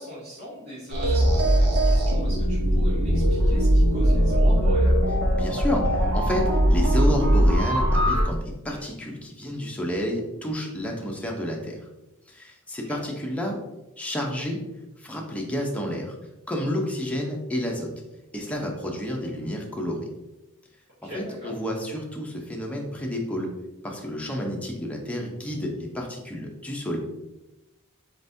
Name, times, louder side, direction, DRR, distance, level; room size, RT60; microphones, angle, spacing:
voice 1, 0.0-5.0 12.8-13.0 21.0-21.5, equal, 55° right, -10 dB, 1.5 m, -40 dB
sound 1, 0.9-8.2, equal, 90° right, 1.0 m, -20 dB
voice 2, 5.4-11.8 12.3-13.6 14.0-14.6 15.0-16.1 16.5-17.9 18.3-20.0 21.0-23.5 23.8-27.0, equal, 5° left, -1 dB, 0.7 m, -30 dB
4.4 x 3.9 x 2.7 m, 0.99 s
head